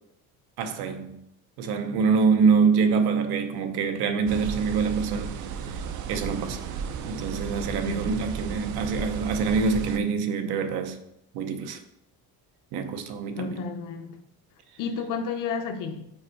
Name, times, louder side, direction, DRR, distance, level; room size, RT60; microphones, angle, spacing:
voice 1, 0.6-1.2 1.6-5.3 6.1-6.6 7.1-11.0 11.3-11.8 12.7-13.7, right 5 dB, 75° right, 0.8 m, -25 dB
sound 1, 4.3-10.0, right 6 dB, 50° right, 0.5 m, -34 dB
voice 2, 13.4-14.2 14.8-16.0, left 5 dB, 55° left, 0.8 m, -31 dB
5.5 x 4.4 x 4.5 m
cardioid pair, 160°, 39 cm